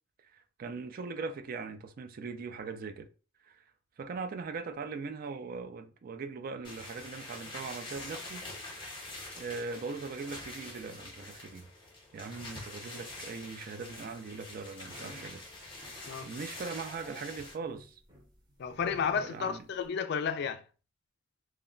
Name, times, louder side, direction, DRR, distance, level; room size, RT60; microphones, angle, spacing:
voice 1, 0.2-3.1 3.4-3.6 4.0-8.5 9.4-11.7 12.1-16.0 16.2-18.0 19.3-19.6, right 4 dB, 45° right, 0.3 m, -40 dB
sound 1, 6.6-17.5, left 2 dB, 25° left, 0.7 m, -45 dB
sound 2, 14.9-15.4 15.8-16.3 16.6-19.9, right 1 dB, 25° right, 0.7 m, -53 dB
voice 2, 18.6-20.6, left 6 dB, 55° left, 0.3 m, -32 dB
2.2 x 2.1 x 3.6 m
head